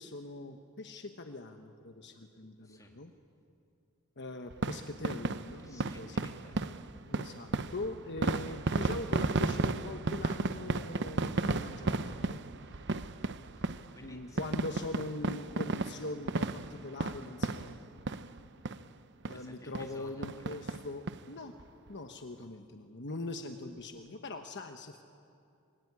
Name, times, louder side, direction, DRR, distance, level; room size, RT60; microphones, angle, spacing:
voice 1, 0.0-3.1 4.2-6.3 7.1-12.4 14.0-17.8 19.3-21.6 21.9-25.0, left 2 dB, 50° left, 6 dB, 1.2 m, -42 dB
voice 2, 2.6-3.0 5.6-7.0 12.6-13.1 13.5-14.4 19.2-20.6 22.3-22.5, left 1 dB, 15° left, 1 dB, 3.1 m, -56 dB
sound 1, 4.5-18.4 18.7-18.8 19.2-19.4 19.7-19.9 20.2-21.2 21.6-21.7 21.9-22.0, right 3 dB, 55° right, 0.8 m, -34 dB
25.5 x 22.0 x 9.8 m, 2.5 s
head